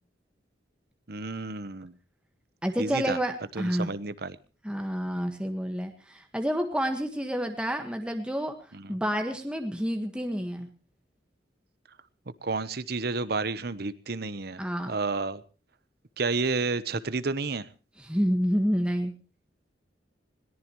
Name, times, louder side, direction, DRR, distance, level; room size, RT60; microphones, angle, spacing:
voice 1, 1.1-1.9 2.8-3.2 3.5-4.4 8.7-9.0 12.4-15.4 16.2-17.7, right 3 dB, 60° right, 15 dB, 1.0 m, -31 dB
voice 2, 2.6-3.9 4.6-8.5 8.9-10.7 14.6-14.9 18.0-19.1, equal, 5° right, 5 dB, 1.6 m, -29 dB
21.5 x 18.5 x 3.1 m, 0.36 s
head